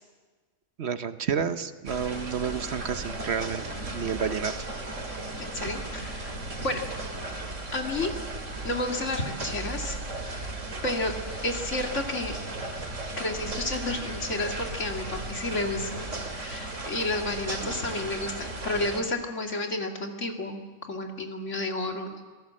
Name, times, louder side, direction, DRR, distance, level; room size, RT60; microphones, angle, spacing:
voice 1, 0.8-3.6 3.9-4.5 5.6-5.7, right 7 dB, 60° right, 11 dB, 1.1 m, -30 dB
sound 1, 1.9-19.0, right 2 dB, 75° right, 3.1 m, -36 dB
voice 2, 5.1-6.3 6.6-6.8 7.7-8.1 8.6-10.0 10.2-10.5 10.8-11.1 11.4-12.4 13.2-16.1 16.4-22.2, left 2 dB, 70° left, 3 dB, 2.6 m, -31 dB
27.0 x 18.0 x 7.5 m, 1.4 s
omnidirectional pair, 1.3 m